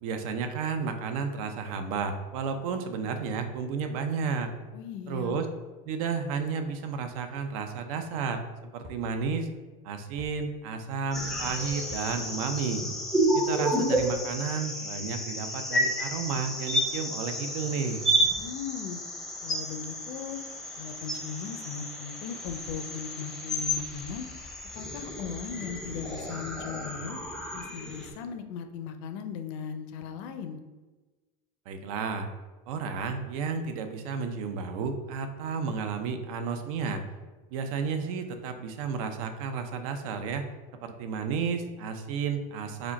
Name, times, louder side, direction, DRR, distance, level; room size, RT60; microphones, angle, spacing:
voice 1, 0.0-4.5 5.1-5.5 5.9-9.5 9.8-12.8 13.3-18.0 31.7-32.3 32.7-37.0 37.5-40.5 40.8-42.9, right 5 dB, 80° right, 7 dB, 0.5 m, -32 dB
voice 2, 4.7-5.4 18.4-19.0 19.4-20.4 20.8-24.3 24.8-27.2 27.5-30.6, left 7 dB, 60° left, 7 dB, 0.5 m, -38 dB
sound 1, 8.8-9.0 10.2-10.3 11.8-12.1 13.8-14.2, right 1 dB, 40° right, 0.8 m, -45 dB
sound 2, 11.1-28.1, equal, ahead, 0.5 m, -31 dB
4.9 x 2.2 x 4.0 m, 1.2 s
cardioid pair, 175°, 18 cm